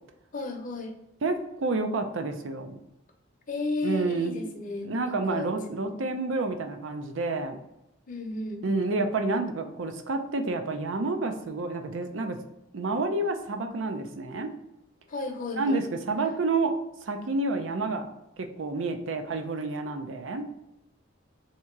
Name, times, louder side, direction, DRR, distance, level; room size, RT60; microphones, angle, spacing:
voice 1, 0.3-0.9 3.5-5.5 5.9-6.0 8.1-8.6 15.1-15.8, left 3 dB, 40° left, 3 dB, 0.7 m, -33 dB
voice 2, 1.2-2.8 3.8-4.3 4.8-7.6 8.6-12.4 12.7-14.5 15.6-16.8 17.0-18.1 18.4-20.5, right 3 dB, 75° right, 6 dB, 0.6 m, -29 dB
3.6 x 2.9 x 4.5 m, 0.90 s
head